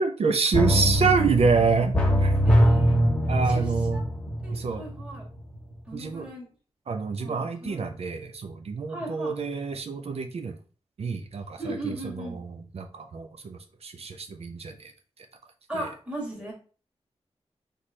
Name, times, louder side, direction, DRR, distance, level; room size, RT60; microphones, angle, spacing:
voice 1, 0.0-1.9 2.2-2.3 3.3-4.0 4.5-4.8 5.9-6.3 6.9-10.6 11.0-14.9, right 5 dB, 65° right, 6 dB, 0.5 m, -27 dB
sound 1, 0.5-5.2 5.5-5.6, equal, 10° left, 1.1 m, -23 dB
voice 2, 2.4-3.0 3.4-4.0 4.4-5.3 5.9-6.5 7.2-7.9 8.9-9.4 11.6-12.4 15.7-16.5, right 1 dB, 10° right, -3 dB, 1.6 m, -37 dB
4.1 x 3.3 x 3.1 m, 0.38 s
wide cardioid pair, 140°, 11 cm